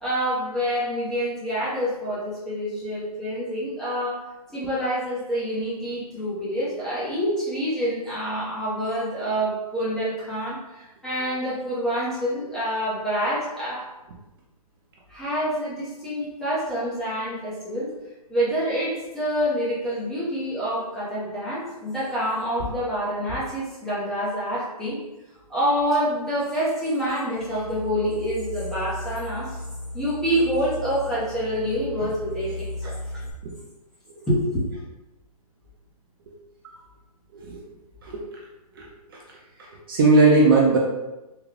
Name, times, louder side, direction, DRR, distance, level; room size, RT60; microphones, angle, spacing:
voice 1, 0.0-4.2 4.5-13.8 15.1-17.9 18.3-25.0 25.5-29.6 29.9-33.2 34.3-34.7, equal, ahead, -11 dB, 0.7 m, -27 dB
sound 1, 27.4-33.3, left 2 dB, 55° left, 0.6 m, -35 dB
voice 2, 37.3-37.6 38.0-38.4 38.8-38.9 39.1-39.2 39.6-40.8, right 3 dB, 35° right, -3 dB, 0.5 m, -19 dB
3.7 x 2.2 x 3.2 m, 1.0 s
hypercardioid pair, 155°, 20 cm